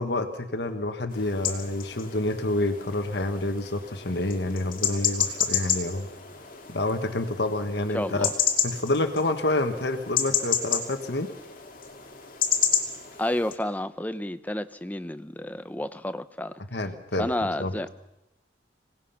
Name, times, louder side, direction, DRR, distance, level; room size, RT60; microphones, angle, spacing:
voice 1, 0.0-6.1 6.7-8.3 8.6-11.3 16.7-17.3 17.6-17.7, left 2 dB, 70° left, 7 dB, 1.5 m, -28 dB
sound 1, 1.1-13.6, left 8 dB, 50° left, 2.5 m, -30 dB
voice 2, 7.9-8.3 13.2-16.5 17.2-17.9, left 1 dB, 10° left, 12 dB, 0.7 m, -30 dB
26.5 x 18.5 x 5.8 m, 0.95 s
head